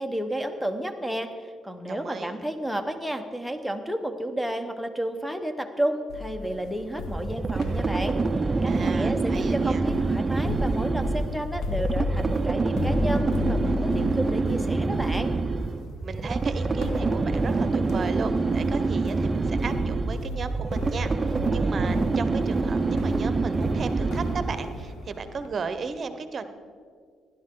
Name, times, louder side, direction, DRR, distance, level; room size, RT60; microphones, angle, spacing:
voice 1, 0.0-8.2 8.6-15.3, right 1 dB, ahead, 8 dB, 1.0 m, -31 dB
voice 2, 1.9-2.4 8.7-9.8 16.0-26.4, right 5 dB, 45° right, 10 dB, 0.9 m, -35 dB
sound 1, 6.1-25.6, left 2 dB, 80° left, 1.1 m, -36 dB
sound 2, 7.1-24.8, right 3 dB, 25° right, 0.6 m, -26 dB
16.0 x 11.0 x 3.8 m, 2.1 s
cardioid pair, 90°, 0 cm